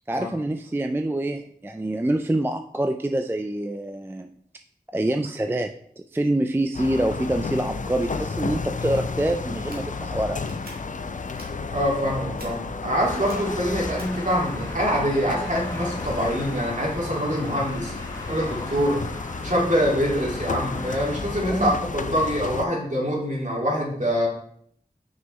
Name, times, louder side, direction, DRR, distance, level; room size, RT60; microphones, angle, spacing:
voice 1, 0.1-4.3 4.9-5.7 6.1-10.4 21.5-21.7, right 1 dB, 15° right, 6 dB, 0.3 m, -26 dB
sound 1, 6.7-22.7, left 4 dB, 55° left, 0.4 m, -32 dB
sound 2, 9.6-9.8 10.4-10.7 11.2-11.5 12.4-12.5 13.1-13.3 14.0-14.1, right 1 dB, 70° right, 1.7 m, -45 dB
voice 2, 11.7-17.9 18.3-19.0 19.4-24.3, equal, 50° right, -3 dB, 2.1 m, -25 dB
sound 3, 13.0-21.2, left 1 dB, 20° left, 1.6 m, -38 dB
5.9 x 5.5 x 3.1 m, 0.65 s
wide cardioid pair, 50°, 16 cm